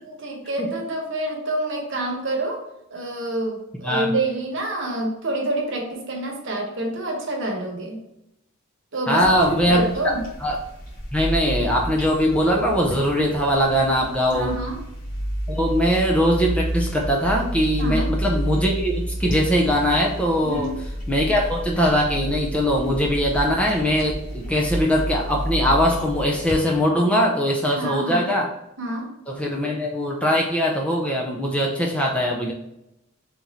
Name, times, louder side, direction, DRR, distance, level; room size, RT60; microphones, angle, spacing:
voice 1, 0.0-2.6 2.9-8.0 8.9-10.2 14.3-14.8 17.8-18.1 20.4-20.8 27.7-28.2 28.8-29.1, right 1 dB, 60° right, 0 dB, 1.1 m, -27 dB
voice 2, 9.1-9.8 10.4-10.6 11.1-14.5 15.5-20.7 21.1-28.5 29.3-32.5, equal, 5° left, -1 dB, 0.4 m, -21 dB
sound 1, 9.2-26.6, right 1 dB, 40° left, 1.4 m, -30 dB
3.7 x 3.0 x 4.0 m, 0.86 s
head